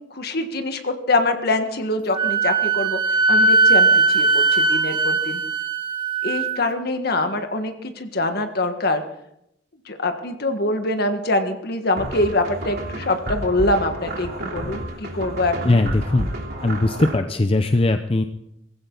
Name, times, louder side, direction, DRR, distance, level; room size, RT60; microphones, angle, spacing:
voice 1, 0.1-5.4 6.2-9.0 9.9-15.8, left 2 dB, 55° left, 6 dB, 1.6 m, -24 dB
Wind instrument woodwind instrument, 2.1-6.6, right 3 dB, 25° right, 1.2 m, -19 dB
sound 1, 12.0-17.2, right 1 dB, 55° right, 3.1 m, -31 dB
voice 2, 15.6-16.3 16.6-18.2, left 2 dB, 30° left, 7 dB, 0.6 m, -19 dB
19.0 x 15.5 x 4.0 m, 0.79 s
head